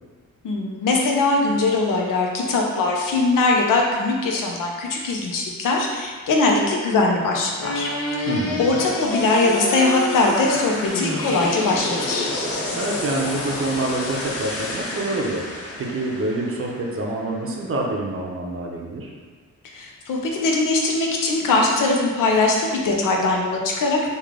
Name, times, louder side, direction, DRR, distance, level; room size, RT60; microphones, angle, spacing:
voice 1, 0.4-7.9 8.2-8.3 8.6-12.3 19.7-24.1, left 3 dB, 85° left, 0 dB, 0.6 m, -21 dB
sound 1, 7.6-17.7, left 2 dB, 45° left, 0.7 m, -28 dB
voice 2, 8.3-8.8 12.7-15.4 15.8-19.1, right 2 dB, 45° right, -1 dB, 0.6 m, -26 dB
3.2 x 2.4 x 3.6 m, 1.5 s
cardioid pair, 100°, 32 cm